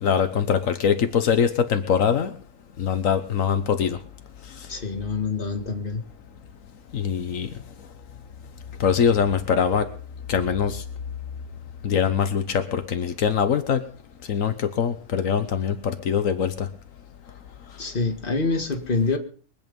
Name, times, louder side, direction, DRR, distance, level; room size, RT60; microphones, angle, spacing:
voice 1, 0.0-2.3 2.8-4.0 6.9-7.5 8.8-9.9 10.3-10.8 11.8-13.8 14.3-16.7, left 7 dB, 85° left, 8 dB, 1.5 m, -23 dB
voice 2, 4.7-6.0 17.8-19.2, left 3 dB, 40° left, 5 dB, 2.1 m, -26 dB
23.0 x 8.6 x 5.3 m, 0.43 s
omnidirectional pair, 1.4 m